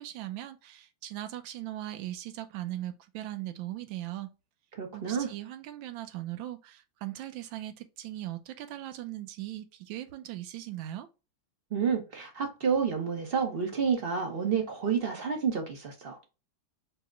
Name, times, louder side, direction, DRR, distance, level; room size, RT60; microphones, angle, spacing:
voice 1, 0.0-4.3 4.9-11.1, right 14 dB, 75° right, 1.3 m, -39 dB
voice 2, 4.8-5.3 11.7-16.3, right 6 dB, 45° right, 0.7 m, -29 dB
4.7 x 2.1 x 3.6 m
omnidirectional pair, 2.2 m